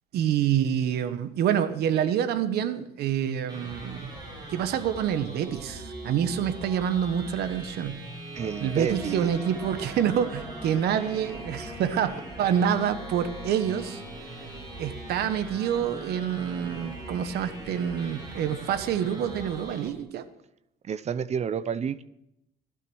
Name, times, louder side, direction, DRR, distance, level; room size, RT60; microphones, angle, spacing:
voice 1, 0.1-4.1 4.5-8.0 8.6-14.0 14.8-20.2, right 9 dB, 70° right, 10 dB, 1.2 m, -27 dB
sound 1, 3.5-19.9, right 2 dB, 25° right, 7.8 m, -41 dB
voice 2, 8.3-9.3 20.8-22.1, right 7 dB, 40° right, 16 dB, 0.7 m, -30 dB
sound 2, 8.4-19.6, left 2 dB, 10° left, 2.0 m, -45 dB
16.0 x 12.0 x 6.3 m, 0.84 s
cardioid pair, 110°, 17 cm